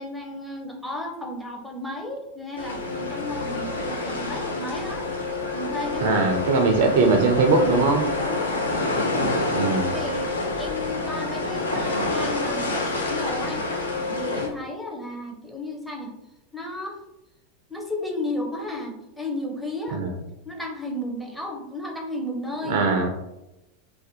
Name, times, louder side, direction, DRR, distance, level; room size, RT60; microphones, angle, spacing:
voice 1, 0.0-5.1 5.5-6.1 6.4-6.5 8.1-8.6 9.5-13.7 14.1-16.1 16.5-17.0 17.7-20.0 20.4-22.8, left 1 dB, ahead, 1 dB, 0.5 m, -33 dB
sound 1, 2.5-14.5, left 2 dB, 75° left, 0.4 m, -27 dB
voice 2, 6.0-8.0 9.5-9.9 19.9-20.1 22.6-23.1, right 3 dB, 55° right, 4 dB, 0.3 m, -20 dB
2.4 x 2.1 x 2.7 m, 0.92 s
figure-of-eight pair, 85°, 0 cm